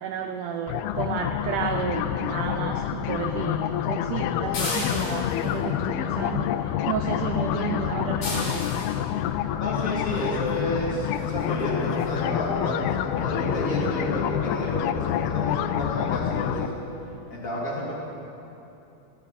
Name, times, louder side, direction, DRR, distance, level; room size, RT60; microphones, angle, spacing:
voice 1, 0.0-8.9, right 7 dB, 85° right, 5 dB, 1.8 m, -32 dB
sound 1, 0.7-16.7, left 10 dB, 85° left, 2.5 m, -27 dB
sound 2, 4.5-5.5 8.2-9.0 10.5-10.6 11.1-11.3 11.6-11.7 12.0-12.1, left 2 dB, 65° left, 5.6 m, -33 dB
voice 2, 9.6-16.7 17.3-17.9, equal, 25° left, -5 dB, 2.7 m, -30 dB
16.5 x 16.0 x 4.2 m, 2.9 s
omnidirectional pair, 4.4 m